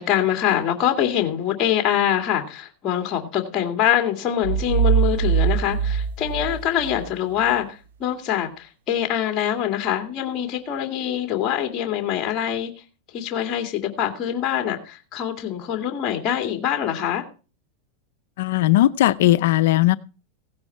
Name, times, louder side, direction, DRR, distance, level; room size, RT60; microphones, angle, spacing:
voice 1, 0.0-12.7 13.1-17.2, left 10 dB, 35° left, 2.3 m, -24 dB
sound 1, 4.4-7.1, right 7 dB, 85° right, 1.5 m, -22 dB
voice 2, 18.4-20.0, left 15 dB, 70° left, 0.6 m, -18 dB
16.5 x 9.6 x 4.5 m
supercardioid pair, 135°, 0 cm